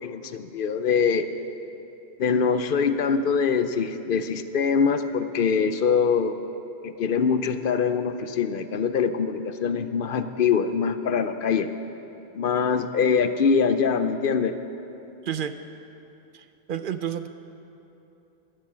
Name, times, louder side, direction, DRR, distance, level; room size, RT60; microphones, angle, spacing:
voice 1, 0.0-1.2 2.2-6.4 6.8-11.7 12.3-14.5, left 6 dB, 65° left, 10 dB, 0.8 m, -23 dB
voice 2, 16.3-17.3, right 9 dB, 65° right, 10 dB, 0.7 m, -30 dB
12.0 x 10.0 x 7.4 m, 2.9 s
omnidirectional pair, 1.0 m